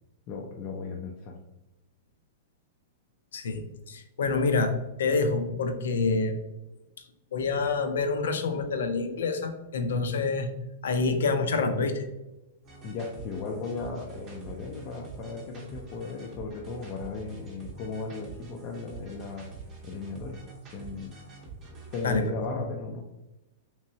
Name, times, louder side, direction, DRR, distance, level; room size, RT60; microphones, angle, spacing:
voice 1, 0.3-1.4 12.8-19.5 19.8-20.4 20.7-21.2 21.9-23.0, left 4 dB, 25° left, 0 dB, 0.4 m, -36 dB
voice 2, 3.9-4.7 5.0-6.3 7.3-10.5 10.8-12.1 22.0-22.2 22.5-22.6, left 4 dB, 85° left, 7 dB, 0.5 m, -27 dB
sound 1, 12.6-22.3, right 4 dB, 20° right, 0.7 m, -46 dB
3.5 x 3.0 x 2.7 m, 0.97 s
supercardioid pair, 170°, 0 cm